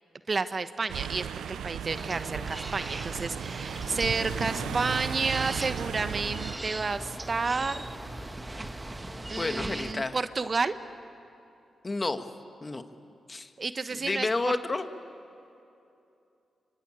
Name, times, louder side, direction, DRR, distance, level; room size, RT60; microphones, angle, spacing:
voice 1, 0.3-7.8 9.3-10.7 13.6-14.5, right 4 dB, 45° right, 11 dB, 1.1 m, -31 dB
sound 1, 0.9-6.6, right 9 dB, 80° right, 0.7 m, -36 dB
sound 2, 1.9-9.9, right 2 dB, 25° right, 1.5 m, -39 dB
sound 3, 3.8-9.6, left 3 dB, 55° left, 3.3 m, -46 dB
voice 2, 9.3-10.2 11.8-12.3 12.6-12.8 13.3-13.5 14.0-14.9, left 3 dB, 35° left, 8 dB, 1.8 m, -30 dB
27.0 x 24.5 x 9.0 m, 2.7 s
supercardioid pair, 45°, 0 cm